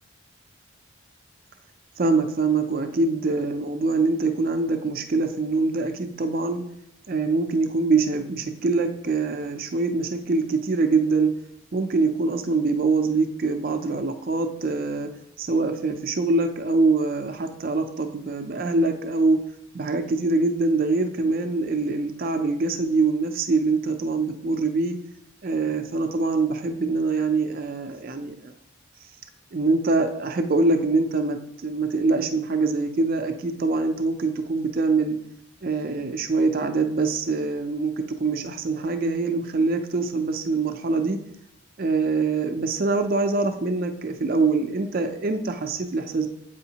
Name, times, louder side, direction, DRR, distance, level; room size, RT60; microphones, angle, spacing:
voice 1, 2.0-6.6 7.1-11.3 11.7-15.1 15.4-19.4 19.7-25.0 25.4-28.5 29.0-29.1 29.5-35.2 35.6-41.2 41.8-46.3, right 3 dB, 45° right, 7 dB, 0.4 m, -24 dB
7.9 x 4.9 x 2.8 m, 0.77 s
head